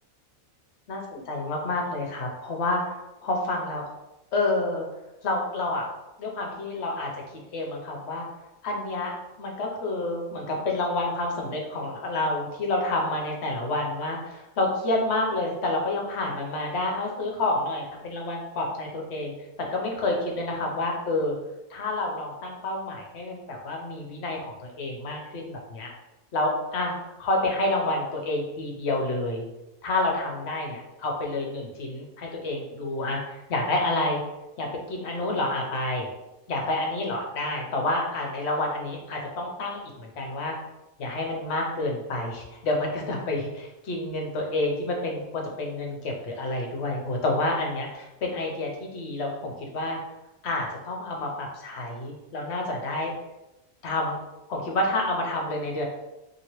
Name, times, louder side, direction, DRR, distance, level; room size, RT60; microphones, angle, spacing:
voice 1, 0.9-3.8 4.3-4.9 5.2-5.9 6.2-7.1 7.5-8.2 8.6-9.1 9.4-19.3 19.7-21.4 21.7-25.9 26.3-29.4 29.8-34.2 34.6-36.1 36.5-40.6 41.0-50.0 50.4-53.1 53.8-54.2 54.5-55.8, left 2 dB, 60° left, 0 dB, 0.8 m, -29 dB
2.9 x 2.8 x 2.9 m, 0.96 s
omnidirectional pair, 1.4 m